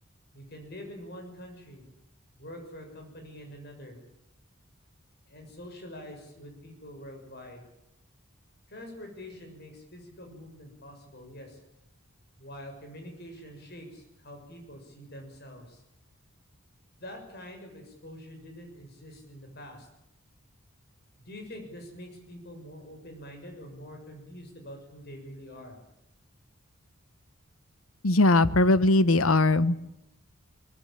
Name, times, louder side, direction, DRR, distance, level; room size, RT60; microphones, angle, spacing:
voice 1, 0.3-1.8 2.4-4.0 5.3-7.6 8.7-11.6 12.4-15.8 17.0-19.9 21.2-25.8, equal, 50° left, 4 dB, 7.0 m, -45 dB
voice 2, 28.0-29.8, left 2 dB, 85° left, 15 dB, 1.1 m, -20 dB
22.5 x 21.5 x 8.9 m, 0.84 s
head